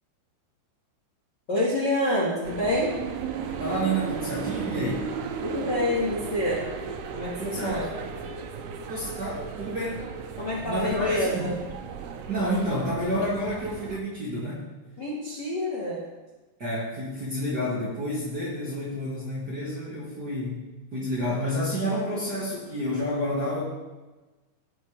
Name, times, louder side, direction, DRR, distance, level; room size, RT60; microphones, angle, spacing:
voice 1, 1.5-2.9 5.4-6.6 7.1-7.9 10.4-11.5 15.0-16.0, left 1 dB, 40° left, -6 dB, 1.6 m, -27 dB
sound 1, 2.4-14.0, right 6 dB, 85° right, 2.9 m, -35 dB
voice 2, 3.6-5.1 7.4-7.9 8.9-10.1 10.6-11.5 12.3-14.6 16.6-20.6 20.9-23.6, equal, 35° right, -8 dB, 1.8 m, -29 dB
17.5 x 6.1 x 3.4 m, 1.2 s
omnidirectional pair, 4.6 m